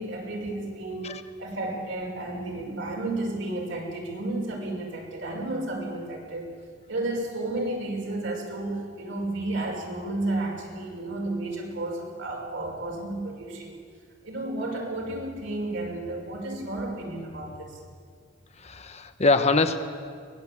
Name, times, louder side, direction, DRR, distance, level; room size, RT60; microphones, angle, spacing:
voice 1, 0.0-1.1 1.4-6.5 6.9-13.8 14.2-17.8, right 2 dB, 65° right, -1 dB, 5.5 m, -32 dB
voice 2, 18.6-19.8, left 3 dB, 35° left, 8 dB, 1.1 m, -23 dB
23.5 x 19.5 x 8.6 m, 2.1 s
head